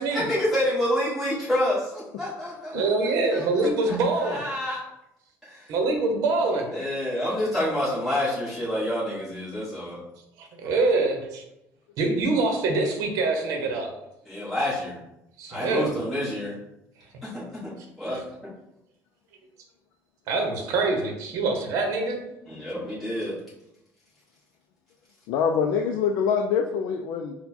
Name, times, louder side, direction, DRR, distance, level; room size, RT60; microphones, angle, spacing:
voice 1, 0.1-4.8 5.4-5.7 6.7-10.0 14.2-15.0 15.5-16.5 17.2-18.5 22.5-23.3, left 1 dB, ahead, -10 dB, 1.2 m, -28 dB
voice 2, 2.7-4.4 5.7-6.7 10.4-11.4 12.0-13.9 15.4-15.9 18.1-18.2 20.3-22.2, right 3 dB, 60° right, 3 dB, 0.8 m, -25 dB
voice 3, 25.3-27.3, left 6 dB, 85° left, 3 dB, 0.4 m, -24 dB
4.3 x 2.2 x 4.2 m, 0.86 s
cardioid pair, 175°, 6 cm